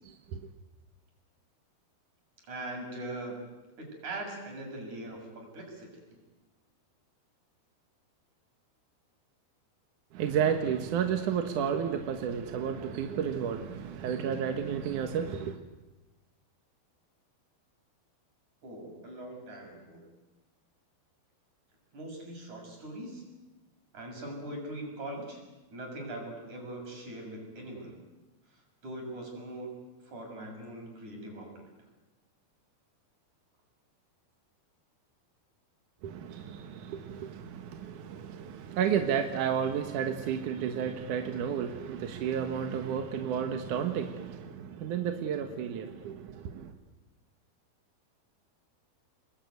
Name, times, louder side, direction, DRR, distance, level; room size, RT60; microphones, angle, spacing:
voice 1, 0.1-0.4 10.1-15.6 36.0-46.7, right 8 dB, 60° right, 2.3 m, -32 dB
voice 2, 2.5-3.4 3.8-5.9 18.6-20.0 21.9-23.2 23.9-25.4 25.7-28.0 28.8-29.7 30.0-31.7, right 1 dB, 45° right, 7.9 m, -41 dB
29.5 x 21.0 x 9.4 m
omnidirectional pair, 4.9 m